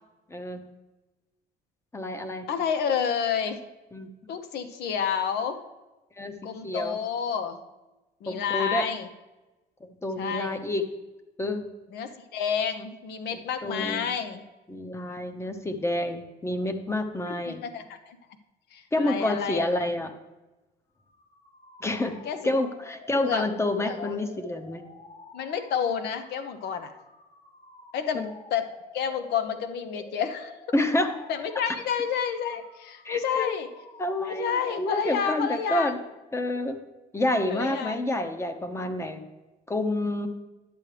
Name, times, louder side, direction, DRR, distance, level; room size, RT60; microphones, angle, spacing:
voice 1, 0.3-0.6 1.9-2.5 3.9-4.1 6.2-6.4 6.6-7.0 8.3-8.8 9.8-10.8 11.4-11.7 13.6-14.1 14.7-17.6 18.9-20.1 21.8-24.8 28.1-28.3 30.7-31.1 33.0-33.5 34.0-36.0 36.3-36.8 37.1-39.2 39.7-40.3, left 1 dB, 15° left, 8 dB, 0.8 m, -28 dB
voice 2, 2.5-3.6 4.3-5.6 6.4-7.6 8.2-9.1 10.2-10.6 11.9-14.4 17.3-18.2 18.7-19.7 22.2-22.5 23.2-23.4 23.8-24.1 25.3-26.9 27.9-28.2 28.5-28.7 28.9-30.5 31.3-33.7 34.2-35.9 37.5-38.0, left 7 dB, 75° left, 9 dB, 0.9 m, -29 dB
sound 1, 21.0-35.7, left 2 dB, 45° left, 3.2 m, -49 dB
10.0 x 7.6 x 3.3 m, 1.1 s
cardioid pair, 110°, 17 cm